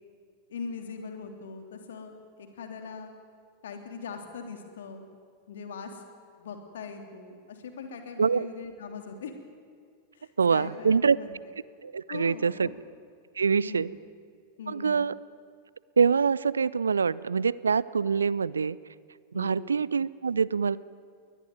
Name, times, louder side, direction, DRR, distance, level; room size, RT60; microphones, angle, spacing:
voice 1, 0.5-3.1 3.6-5.0 5.5-6.0 6.4-9.3 10.1-11.3 12.1-12.7 13.6-14.0 14.6-15.0 19.3-19.6, left 5 dB, 60° left, 5 dB, 3.1 m, -41 dB
voice 2, 10.4-11.2 11.8-12.7 13.4-13.9 14.7-15.1 16.0-18.8 19.3-20.8, right 5 dB, 75° right, 21 dB, 0.5 m, -25 dB
22.0 x 19.5 x 9.3 m, 2.1 s
figure-of-eight pair, 90°, 0 cm